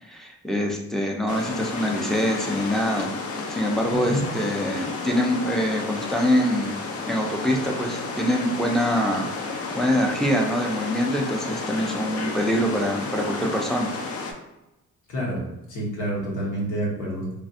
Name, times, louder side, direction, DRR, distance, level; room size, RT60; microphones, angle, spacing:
voice 1, 0.0-3.1 3.5-6.8 7.1-9.3 9.6-13.9, equal, ahead, 1 dB, 0.5 m, -24 dB
sound 1, 1.3-14.3, left 3 dB, 50° left, 0.6 m, -32 dB
voice 2, 3.9-4.3 15.1-15.4 15.7-17.3, right 1 dB, 80° left, -3 dB, 1.1 m, -28 dB
3.3 x 2.3 x 2.7 m, 0.95 s
cardioid pair, 90°, 30 cm